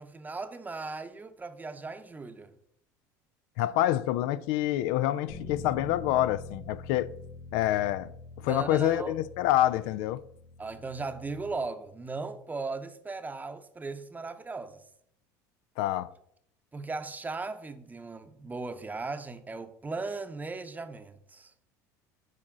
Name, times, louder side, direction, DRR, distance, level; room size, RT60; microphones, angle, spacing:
voice 1, 0.0-2.5 8.5-9.1 10.6-14.8 16.7-21.5, right 3 dB, 20° right, 0.8 m, -37 dB
voice 2, 3.6-7.1 7.5-8.1 8.4-10.2 15.8-16.1, left 13 dB, 70° left, 0.4 m, -27 dB
Bass guitar, 5.3-11.5, left 3 dB, 85° left, 1.3 m, -45 dB
8.5 x 4.9 x 3.7 m
hypercardioid pair, 80°, 9 cm